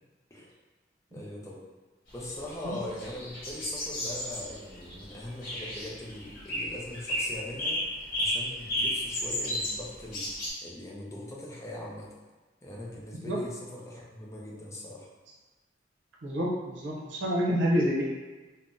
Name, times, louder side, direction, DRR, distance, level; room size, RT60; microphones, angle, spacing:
voice 1, 1.1-1.6 2.1-7.8 8.2-10.3 10.6-12.1 12.6-15.1, left 1 dB, 15° left, -4 dB, 0.5 m, -41 dB
sound 1, 2.2-10.5, left 1 dB, 50° left, 1.0 m, -33 dB
voice 2, 16.2-18.0, equal, 85° right, -4 dB, 0.6 m, -28 dB
3.5 x 2.1 x 2.6 m, 1.2 s
head